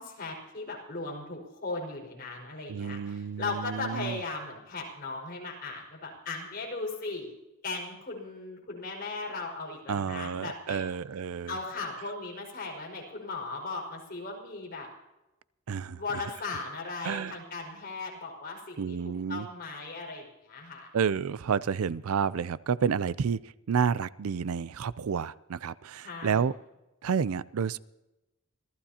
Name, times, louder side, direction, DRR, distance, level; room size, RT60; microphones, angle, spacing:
voice 1, 0.0-7.3 7.6-10.9 11.5-14.9 16.0-20.9 26.0-26.4, left 3 dB, 45° left, -1 dB, 5.1 m, -37 dB
voice 2, 2.7-4.2 9.9-11.5 15.7-16.0 17.0-17.4 18.8-19.5 20.9-26.5 27.0-27.8, right 6 dB, 75° right, 19 dB, 0.4 m, -30 dB
26.5 x 15.5 x 2.9 m, 0.99 s
head